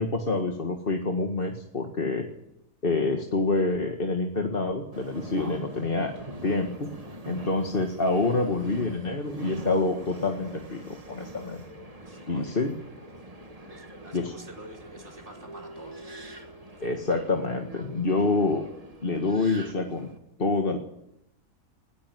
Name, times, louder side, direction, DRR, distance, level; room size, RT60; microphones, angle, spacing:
voice 1, 0.0-2.3 2.8-6.1 6.4-6.9 7.2-11.6 12.3-12.7 14.1-14.3 16.8-18.7 19.0-20.1 20.4-20.8, left 3 dB, 35° left, 4 dB, 1.9 m, -27 dB
Subway metro underground, 4.9-20.2, right 1 dB, 25° right, 2.2 m, -44 dB
voice 2, 12.1-13.2 13.5-16.0 16.7-17.3, right 2 dB, 50° right, 2 dB, 5.1 m, -48 dB
20.5 x 17.5 x 9.2 m, 0.78 s
omnidirectional pair, 1.6 m